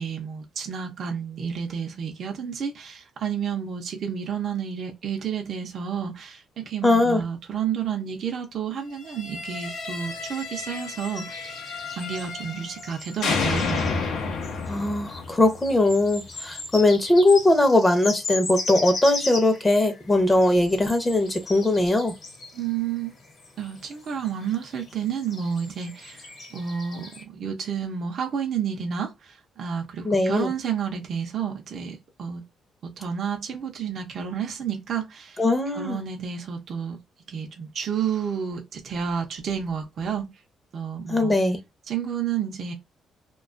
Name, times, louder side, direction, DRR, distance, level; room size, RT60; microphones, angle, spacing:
voice 1, 0.0-11.6 12.0-13.8 22.5-23.1 23.6-26.2 26.5-32.4 33.0-35.4 35.7-37.0 37.3-40.3 40.7-41.3 41.9-42.7, right 7 dB, 60° right, 0.5 m, -30 dB
voice 2, 6.8-7.2 14.7-22.1 30.0-30.5 35.4-36.0 41.1-41.6, left 2 dB, 20° left, 0.6 m, -20 dB
sound 1, 9.1-12.9 13.2-16.2, left 4 dB, 85° left, 0.5 m, -31 dB
sound 2, 9.9-27.2, left 3 dB, 55° left, 0.9 m, -38 dB
2.3 x 2.2 x 2.4 m
cardioid pair, 90°, 0 cm